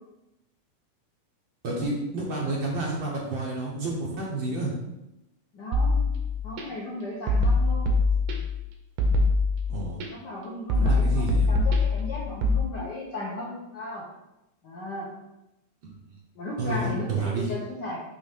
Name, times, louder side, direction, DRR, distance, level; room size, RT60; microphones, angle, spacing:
voice 1, 1.6-4.7 9.7-10.0 10.7-11.5 16.6-17.5, right 2 dB, 65° right, -3 dB, 1.2 m, -29 dB
voice 2, 5.5-6.1 6.4-7.9 10.1-14.1 14.6-15.1 16.3-18.0, left 1 dB, 65° left, -6 dB, 1.1 m, -36 dB
sound 1, 5.7-6.6 7.3-8.6 9.0-10.1 10.7-12.6, left 2 dB, 85° right, 2.3 m, -23 dB
6.0 x 3.2 x 5.1 m, 0.91 s
omnidirectional pair, 3.5 m